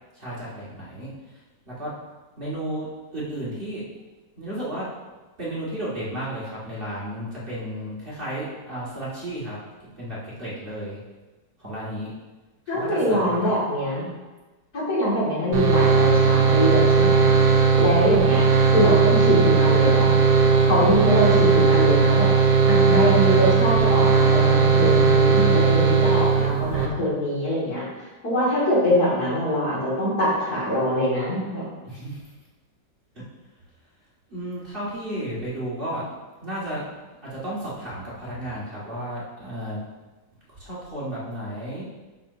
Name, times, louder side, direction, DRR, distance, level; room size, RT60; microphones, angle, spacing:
voice 1, 0.2-1.1 1.7-1.9 2.4-3.8 4.4-4.9 5.4-9.6 10.0-11.0 11.6-12.1 12.7-13.5 31.8-32.2 34.3-36.0 36.4-36.8 37.2-39.8 40.5-41.8, right 1 dB, 30° right, -8 dB, 2.3 m, -33 dB
voice 2, 12.7-14.0 14.7-17.3 17.8-18.4 18.7-20.1 20.6-27.8 28.2-31.6, equal, 60° left, -7 dB, 3.1 m, -23 dB
sound 1, 15.5-26.9, right 5 dB, 75° right, 1.5 m, -18 dB
11.5 x 5.9 x 2.9 m, 1.2 s
omnidirectional pair, 1.9 m